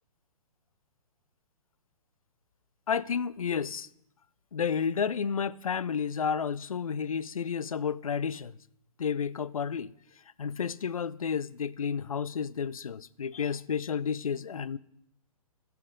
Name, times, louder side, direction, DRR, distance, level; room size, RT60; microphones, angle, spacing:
voice 1, 2.9-3.9 4.5-8.5 9.0-9.9 10.4-14.8, left 6 dB, 65° left, 0.4 m, -31 dB
16.0 x 5.9 x 3.8 m
figure-of-eight pair, 125°, 19 cm